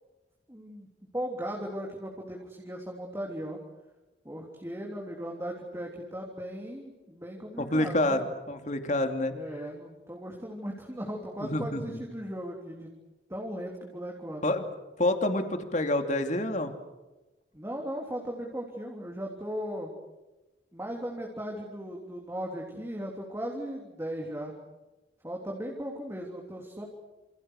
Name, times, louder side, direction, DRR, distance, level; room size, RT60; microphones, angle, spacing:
voice 1, 0.5-0.9 1.1-3.6 4.2-8.2 9.3-12.9 13.3-14.6 17.5-19.9 20.7-24.5 25.2-26.8, equal, 15° right, -1 dB, 3.4 m, -37 dB
voice 2, 7.6-9.3 11.4-12.0 14.4-14.7 15.0-16.7, left 1 dB, 40° left, 6 dB, 2.8 m, -28 dB
28.5 x 28.5 x 6.5 m, 1.1 s
head